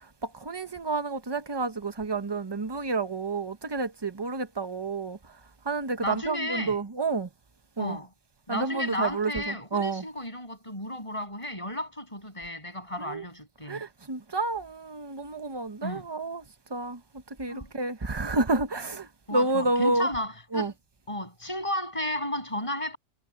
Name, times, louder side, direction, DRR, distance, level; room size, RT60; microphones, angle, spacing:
voice 1, 0.2-5.2 5.6-7.3 7.8-8.0 8.5-10.0 13.0-13.2 13.7-16.4 16.7-17.0 17.4-20.1 20.5-20.7, right 3 dB, 25° right, 1.0 m, -30 dB
voice 2, 6.0-6.8 7.8-8.1 8.5-13.9 15.8-16.1 17.5-17.7 19.3-20.7 21.1-23.0, left 1 dB, 30° left, 8.1 m, -33 dB
omnidirectional pair, 1.1 m